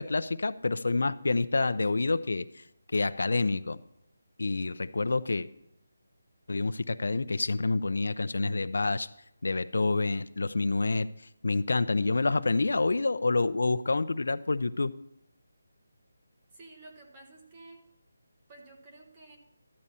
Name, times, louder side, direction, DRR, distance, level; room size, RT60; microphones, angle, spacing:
voice 1, 0.0-2.6 2.9-3.8 4.4-5.5 6.5-9.1 9.4-11.1 11.4-14.9, left 3 dB, 65° left, 12 dB, 0.5 m, -28 dB
voice 2, 16.5-17.8 18.5-19.4, right 2 dB, 15° right, 1 dB, 1.0 m, -51 dB
13.0 x 8.8 x 4.1 m, 0.81 s
hypercardioid pair, 180°, 0 cm